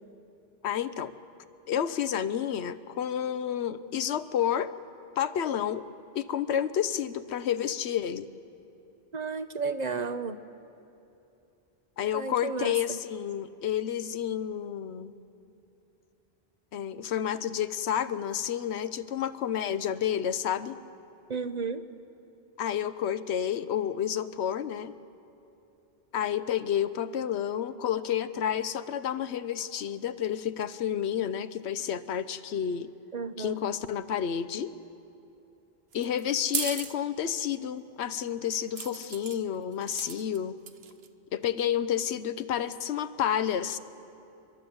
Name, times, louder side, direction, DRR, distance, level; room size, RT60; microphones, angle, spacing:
voice 1, 0.6-1.1 1.7-4.7 5.2-5.8 6.1-8.3 12.0-15.1 16.7-20.8 22.6-24.9 26.1-32.9 33.4-34.7 35.9-40.6 41.3-43.8, left 9 dB, 90° left, 13 dB, 1.0 m, -30 dB
voice 2, 9.1-10.4 12.1-13.0 21.3-21.8 33.1-33.6, right 4 dB, 45° right, 10 dB, 0.7 m, -33 dB
sound 1, 35.9-36.9 38.8-39.4 39.8-40.4 40.7-41.1, right 7 dB, 75° right, 1.1 m, -35 dB
30.0 x 12.0 x 7.9 m, 2.8 s
omnidirectional pair, 1.1 m